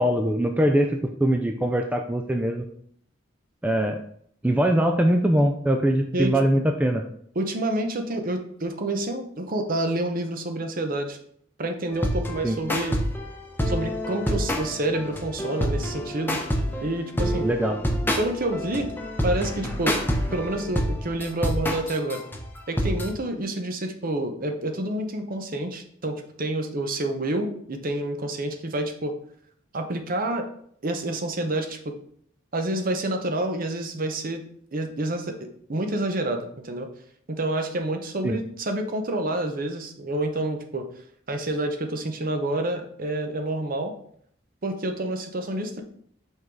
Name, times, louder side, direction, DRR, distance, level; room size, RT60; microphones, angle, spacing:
voice 1, 0.0-2.7 3.6-4.0 4.4-7.0 12.4-12.6 17.4-17.8 38.2-38.4, right 1 dB, 10° right, 4 dB, 0.4 m, -22 dB
voice 2, 7.4-11.2 11.6-12.9 13.7-16.4 16.8-17.5 18.2-18.9 19.2-20.0 20.3-22.2 22.7-29.1 29.7-30.5 30.8-31.9 32.5-34.4 34.7-36.9 37.3-40.9 41.3-43.9 44.6-45.8, right 1 dB, 50° right, 6 dB, 0.8 m, -28 dB
sound 1, 11.9-23.1, equal, 10° left, 0.8 m, -28 dB
5.4 x 3.8 x 4.7 m, 0.64 s
head